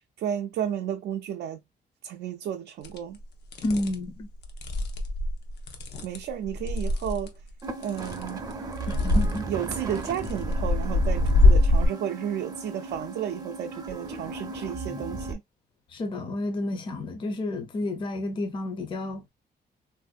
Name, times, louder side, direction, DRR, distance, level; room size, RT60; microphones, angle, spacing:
voice 1, 0.0-1.6 2.0-3.2 6.0-7.3 7.8-8.4 9.5-15.4, right 9 dB, 80° right, 0.4 m, -32 dB
sound 1, 2.8-3.0 3.5-4.0 4.4-7.3 7.8-8.5 8.8-9.4 10.0-11.9, left 2 dB, 90° left, 0.8 m, -23 dB
voice 2, 3.6-4.3 8.9-9.4 15.9-19.2, left 2 dB, 30° left, 0.5 m, -30 dB
sound 2, 7.6-15.3, right 3 dB, 25° right, 0.5 m, -36 dB
3.3 x 2.5 x 2.3 m
wide cardioid pair, 175°, 17 cm